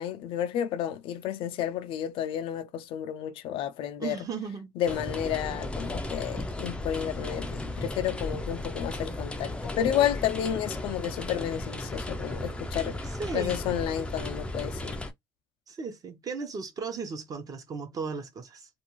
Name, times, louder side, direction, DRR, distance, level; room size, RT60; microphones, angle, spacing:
voice 1, 0.0-4.2 4.8-15.0, left 10 dB, 75° left, 0.4 m, -31 dB
voice 2, 4.0-4.7 13.2-13.6 15.7-18.7, right 5 dB, 40° right, 0.9 m, -36 dB
sound 1, 4.9-15.1, left 1 dB, 10° left, 0.4 m, -35 dB
2.5 x 2.3 x 3.0 m
cardioid pair, 110°, 9 cm